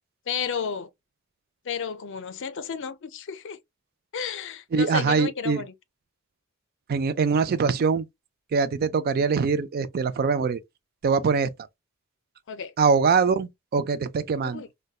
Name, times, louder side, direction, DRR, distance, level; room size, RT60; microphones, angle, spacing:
voice 1, 0.3-0.9 1.6-3.6 4.1-5.7 12.5-12.7 14.4-14.7, left 6 dB, 55° left, 0.4 m, -32 dB
voice 2, 4.7-5.6 6.9-8.0 8.5-10.6 11.0-11.5 12.8-14.6, right 5 dB, 45° right, 0.3 m, -23 dB
4.0 x 2.2 x 2.3 m
head